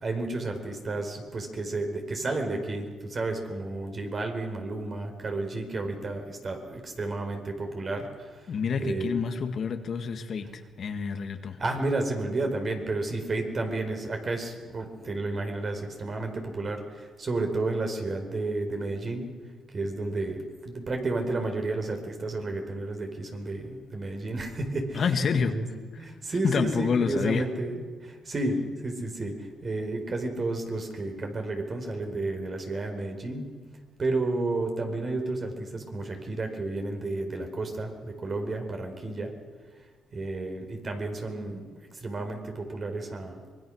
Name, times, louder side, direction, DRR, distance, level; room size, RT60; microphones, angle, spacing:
voice 1, 0.0-8.3 8.8-9.4 11.6-19.3 19.7-25.7 26.0-33.5 34.0-39.3 40.1-43.4, right 2 dB, 40° right, 4 dB, 4.4 m, -32 dB
voice 2, 8.5-11.6 24.9-25.6 26.4-27.4, left 6 dB, 55° left, 6 dB, 1.8 m, -28 dB
24.5 x 21.5 x 6.4 m, 1.5 s
cardioid pair, 90°, 0 cm